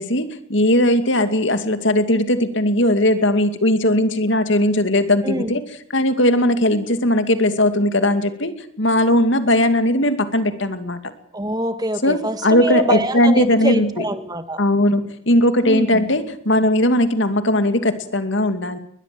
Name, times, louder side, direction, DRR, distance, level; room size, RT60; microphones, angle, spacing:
voice 1, 0.0-5.6 5.9-11.0 12.0-14.0 14.6-18.8, left 1 dB, 60° left, 9 dB, 2.4 m, -18 dB
voice 2, 11.3-14.6 15.6-16.0, right 1 dB, 20° right, 9 dB, 1.9 m, -24 dB
21.5 x 21.0 x 7.7 m, 0.64 s
head